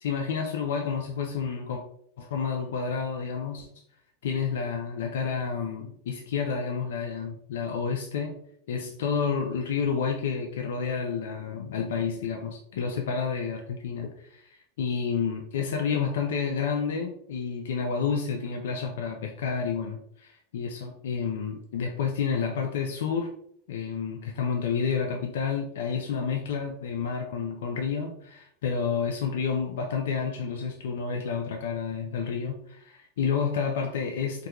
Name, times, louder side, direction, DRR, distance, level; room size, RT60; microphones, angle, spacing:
voice 1, 0.0-1.8 2.2-3.7 4.2-8.4 8.7-23.3 23.7-34.5, left 6 dB, 75° left, 2 dB, 0.4 m, -30 dB
3.5 x 2.2 x 2.9 m, 0.68 s
hypercardioid pair, 100°, 0 cm